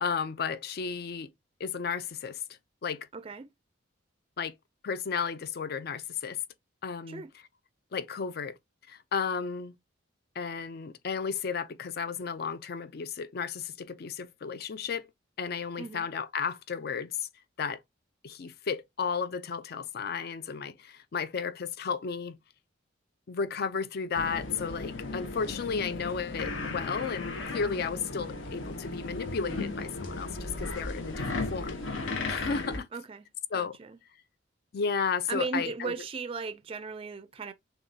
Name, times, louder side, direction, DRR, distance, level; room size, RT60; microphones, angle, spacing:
voice 1, 0.0-1.3 1.6-2.4 2.8-3.1 4.4-4.5 4.8-6.4 6.8-7.2 7.9-8.6 8.9-9.7 10.4-15.1 15.4-17.3 17.6-17.8 18.2-22.4 23.3-31.8 32.3-32.9 33.5-33.8 34.7-35.9, left 6 dB, 50° left, 0.4 m, -33 dB
voice 2, 3.1-3.5 7.1-7.3 15.8-16.1 32.9-33.3 33.5-34.0 35.3-37.5, right 4 dB, 30° right, 0.4 m, -36 dB
sound 1, 24.1-32.8, left 3 dB, 80° left, 0.9 m, -36 dB
6.5 x 2.3 x 2.7 m
head